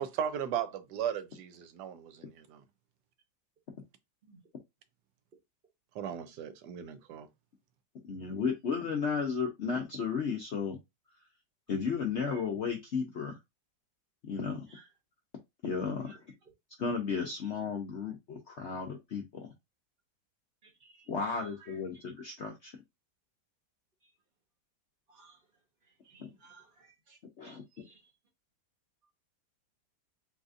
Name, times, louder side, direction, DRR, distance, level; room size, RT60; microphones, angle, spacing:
voice 1, 0.0-2.6 5.9-7.3, right 9 dB, 75° right, 1.1 m, -36 dB
voice 2, 8.0-10.8 11.7-13.4 14.2-14.7 15.6-16.2 16.8-19.5 21.1-22.7 26.2-26.3 27.4-27.6, left 5 dB, 70° left, 0.6 m, -34 dB
voice 3, 20.8-21.5 25.1-25.4 26.0-27.2 27.4-28.0, right 5 dB, 45° right, 0.7 m, -58 dB
4.0 x 2.5 x 2.5 m
omnidirectional pair, 2.0 m